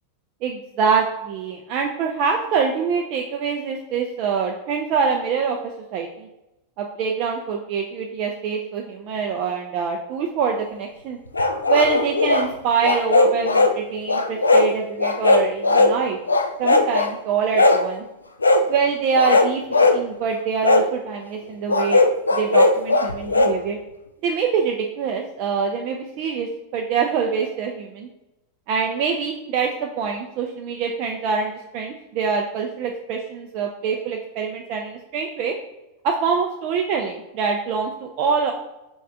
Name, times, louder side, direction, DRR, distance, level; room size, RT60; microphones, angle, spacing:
voice 1, 0.4-6.3 6.8-11.2 11.7-16.2 16.6-18.0 18.7-22.0 22.3-23.8 24.2-28.1 28.7-35.5 36.0-38.5, right 6 dB, 45° right, 1 dB, 0.4 m, -25 dB
sound 1, 11.3-12.5 12.8-13.7 14.1-14.7 15.0-15.9 16.3-17.1 17.5-17.8 18.4-18.6 19.1-20.0 20.6-20.9 21.7-23.5, left 3 dB, 80° left, 0.3 m, -17 dB
5.1 x 3.2 x 2.4 m, 0.92 s
figure-of-eight pair, 90°, 0 cm